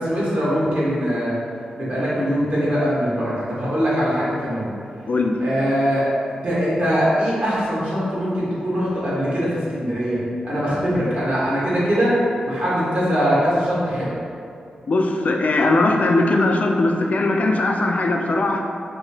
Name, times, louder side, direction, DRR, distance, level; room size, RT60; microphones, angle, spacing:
voice 1, 0.0-1.3 1.8-4.7 5.4-6.1 6.4-12.2 12.4-14.1, equal, 60° right, -9 dB, 1.3 m, -22 dB
voice 2, 5.1-5.4 14.9-18.6, left 2 dB, 55° left, 3 dB, 0.3 m, -19 dB
2.9 x 2.7 x 3.2 m, 2.4 s
cardioid pair, 60°, 3 cm